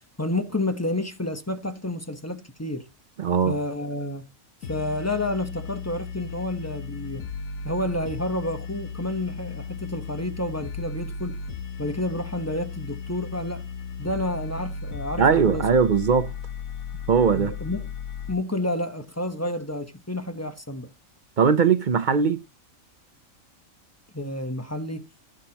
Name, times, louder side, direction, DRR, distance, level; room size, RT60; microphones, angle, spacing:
voice 1, 0.2-2.8 3.4-4.3 4.7-7.3 7.6-11.4 11.8-13.6 14.0-15.7 17.4-17.9 18.3-20.9 24.1-25.1, left 1 dB, 15° left, 0.8 m, -30 dB
voice 2, 3.2-3.6 15.2-16.3 17.1-17.5 21.4-22.4, right 6 dB, 50° right, 0.6 m, -20 dB
sound 1, 4.6-18.3, left 5 dB, 75° left, 1.4 m, -35 dB
16.0 x 6.3 x 2.8 m
omnidirectional pair, 1.4 m